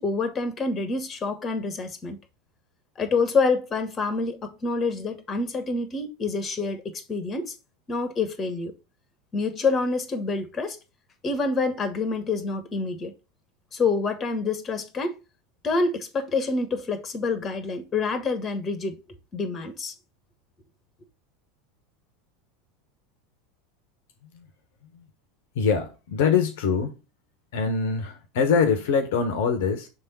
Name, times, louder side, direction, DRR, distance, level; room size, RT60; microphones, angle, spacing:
voice 1, 0.0-2.2 3.0-7.5 7.9-8.7 9.3-10.8 11.2-13.1 13.7-15.2 15.6-19.0 19.3-19.9, left 4 dB, 30° left, 1.3 m, -27 dB
voice 2, 25.5-27.0 27.5-29.9, left 6 dB, 60° left, 1.0 m, -24 dB
6.3 x 3.6 x 4.1 m
figure-of-eight pair, 80°, 0 cm